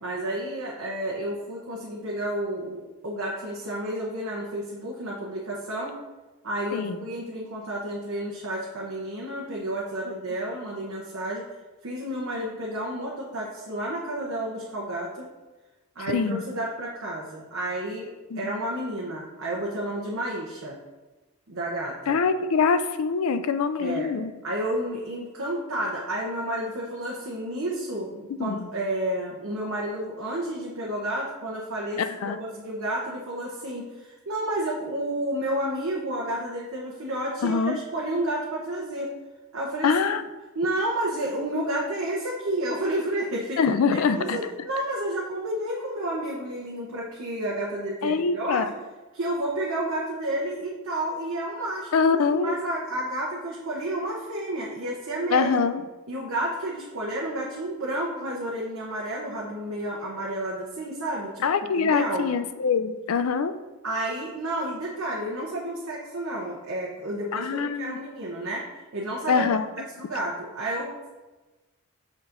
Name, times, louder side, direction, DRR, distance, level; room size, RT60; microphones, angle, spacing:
voice 1, 0.0-6.0 6.4-11.4 11.8-15.3 16.0-18.1 18.4-20.8 21.5-22.2 23.8-24.1 24.4-39.1 39.5-40.1 40.5-43.6 43.9-48.7 49.1-55.5 56.1-61.4 61.8-62.3 63.8-68.7 68.9-69.5 70.0-71.1, right 1 dB, 65° right, -3 dB, 0.8 m, -31 dB
voice 2, 16.0-16.4 18.3-18.5 22.1-24.3 28.4-28.7 32.0-32.4 37.4-37.8 39.8-40.2 43.6-44.4 48.0-48.7 51.9-52.6 55.3-55.8 61.4-63.6 67.3-68.0 69.3-69.7, left 5 dB, 70° left, 11 dB, 0.4 m, -24 dB
6.9 x 5.8 x 2.6 m, 1.2 s
head